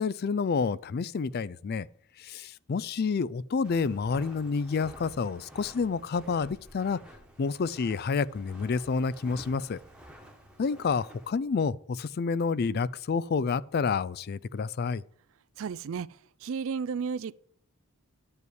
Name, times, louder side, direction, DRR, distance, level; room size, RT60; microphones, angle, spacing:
voice 1, 0.0-1.9 2.2-7.0 7.4-9.8 10.6-15.0, left 5 dB, 45° left, 0.3 m, -29 dB
Walk footsteps, 3.6-11.3, equal, 5° right, 1.3 m, -51 dB
voice 2, 15.6-17.3, right 6 dB, 60° right, 0.4 m, -33 dB
10.5 x 5.5 x 7.9 m
head